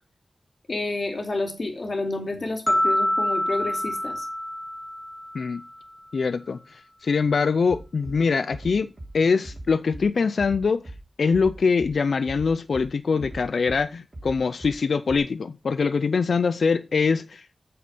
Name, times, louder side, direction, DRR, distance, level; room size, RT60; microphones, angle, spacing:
voice 1, 0.7-4.3, left 2 dB, 55° left, 2.7 m, -29 dB
sound 1, 2.7-5.8, left 1 dB, 15° left, 1.8 m, -26 dB
voice 2, 6.1-10.8 11.2-17.5, left 5 dB, 85° left, 0.5 m, -23 dB
Bass drum, 7.7-8.2 8.5-9.1 9.4-10.0 10.4-11.0 11.3-11.9 12.2-12.9 13.2-13.8 14.1-14.7 15.1-15.2, right 1 dB, 50° right, 2.8 m, -39 dB
8.4 x 7.0 x 5.2 m
wide cardioid pair, 85°, 0 cm